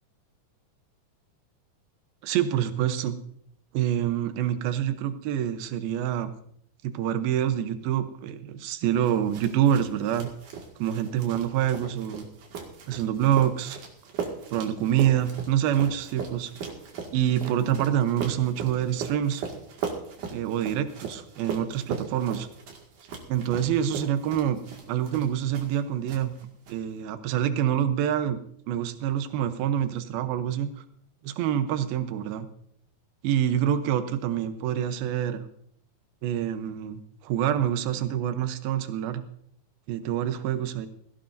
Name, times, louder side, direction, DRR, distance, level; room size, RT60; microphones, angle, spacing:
voice 1, 2.2-3.2 3.7-6.3 6.8-10.3 10.8-12.2 12.9-13.8 14.5-16.5 17.1-19.4 20.3-22.5 23.3-24.6 24.9-26.3 26.7-28.4 28.7-30.7 31.2-32.5 33.2-35.4 36.2-39.2 39.9-40.9, right 10 dB, 85° right, 9 dB, 2.8 m, -26 dB
sound 1, 9.0-25.8 26.1-26.7, right 6 dB, 60° right, 3.4 m, -38 dB
18.5 x 16.5 x 2.6 m, 0.67 s
omnidirectional pair, 4.2 m